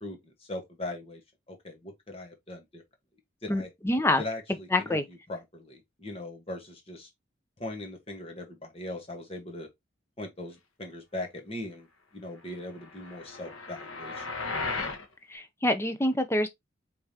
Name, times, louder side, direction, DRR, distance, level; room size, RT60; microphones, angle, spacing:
voice 1, 0.0-1.2 1.5-2.8 3.4-3.7 4.2-7.1 7.6-9.7 10.2-11.9 12.1-14.3, left 1 dB, 30° left, 1.4 m, -40 dB
voice 2, 3.5-4.2 4.7-5.0 15.3-16.5, left 1 dB, 10° left, 0.6 m, -26 dB
sound 1, 12.8-15.0, left 3 dB, 90° left, 1.3 m, -35 dB
4.9 x 3.5 x 2.8 m
head